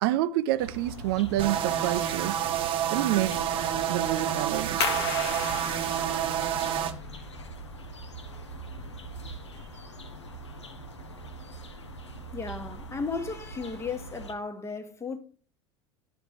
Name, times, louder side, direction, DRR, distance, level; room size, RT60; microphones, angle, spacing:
voice 1, 0.0-2.4 2.9-3.4 3.9-4.8, right 14 dB, 55° right, 0.5 m, -27 dB
sound 1, 0.6-14.3, right 1 dB, 85° left, 0.9 m, -43 dB
sound 2, 1.4-6.9, right 10 dB, 40° right, 0.9 m, -29 dB
sound 3, 4.8-10.1, left 5 dB, 70° left, 1.3 m, -36 dB
voice 2, 12.3-15.2, left 4 dB, 20° left, 1.1 m, -35 dB
11.5 x 5.0 x 3.3 m
figure-of-eight pair, 80°, 14 cm